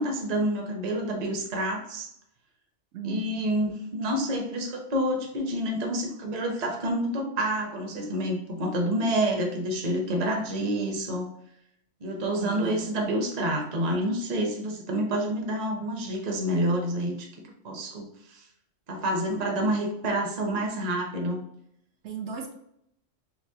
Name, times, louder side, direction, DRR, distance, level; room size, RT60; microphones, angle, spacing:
voice 1, 0.0-2.1 3.0-11.3 12.0-17.3 17.6-18.4 18.9-21.4, right 1 dB, 40° right, 1 dB, 0.7 m, -28 dB
voice 2, 2.9-3.3 12.3-12.8 19.3-19.4 22.0-22.5, right 4 dB, 70° right, 2 dB, 0.9 m, -36 dB
5.8 x 2.0 x 2.7 m, 0.75 s
omnidirectional pair, 1.2 m